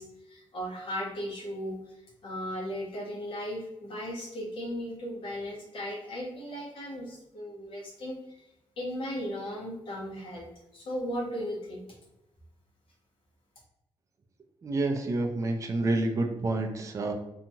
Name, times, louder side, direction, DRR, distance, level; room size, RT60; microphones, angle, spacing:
voice 1, 0.0-8.4 8.8-11.9, equal, 65° left, -2 dB, 0.9 m, -36 dB
voice 2, 14.6-17.1, right 2 dB, 30° right, 3 dB, 0.4 m, -28 dB
2.8 x 2.3 x 2.7 m, 0.88 s
wide cardioid pair, 130°, 10 cm